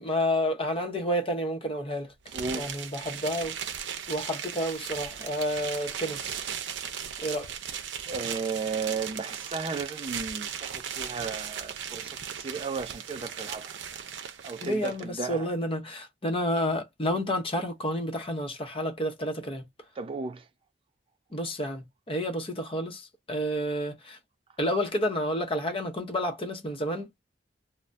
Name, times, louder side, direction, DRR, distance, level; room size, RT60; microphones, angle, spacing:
voice 1, 0.0-2.1 2.5-3.6 4.1-6.4 7.2-7.5 14.6-19.7 21.3-24.2 24.6-27.2, equal, 30° left, 0.8 m, -30 dB
voice 2, 2.3-2.7 7.2-7.3 8.1-13.8 14.4-15.5 20.0-20.4, right 4 dB, 30° right, 0.3 m, -34 dB
sound 1, 2.3-15.0, right 8 dB, 70° right, 0.6 m, -37 dB
3.2 x 2.1 x 2.5 m
head